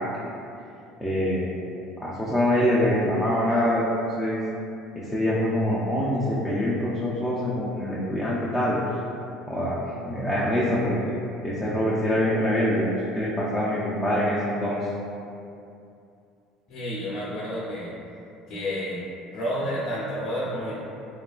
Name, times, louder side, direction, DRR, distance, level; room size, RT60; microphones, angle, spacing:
voice 1, 1.0-1.5 2.0-3.8 4.2-4.4 5.0-8.8 9.5-9.8 10.1-11.2 11.4-14.9, left 1 dB, 5° left, -9 dB, 0.4 m, -24 dB
voice 2, 16.7-17.9 18.5-19.0 19.3-20.7, equal, 60° left, -8 dB, 0.5 m, -30 dB
2.8 x 2.3 x 2.3 m, 2.6 s
supercardioid pair, 115°, 0 cm